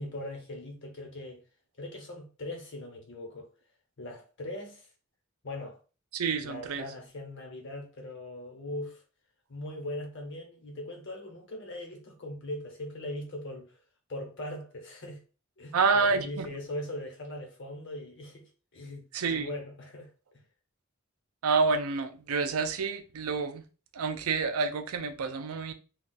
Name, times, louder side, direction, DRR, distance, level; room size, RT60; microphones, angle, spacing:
voice 1, 0.0-1.4 1.8-3.5 4.0-4.9 5.4-5.8 6.4-9.0 9.5-13.8 14.1-15.2 15.6-20.1, left 1 dB, 60° left, 1.0 m, -40 dB
voice 2, 6.1-6.8 15.7-16.5 19.1-19.5 21.4-23.6 23.9-25.7, right 4 dB, 85° right, 0.5 m, -28 dB
2.3 x 2.3 x 4.0 m
head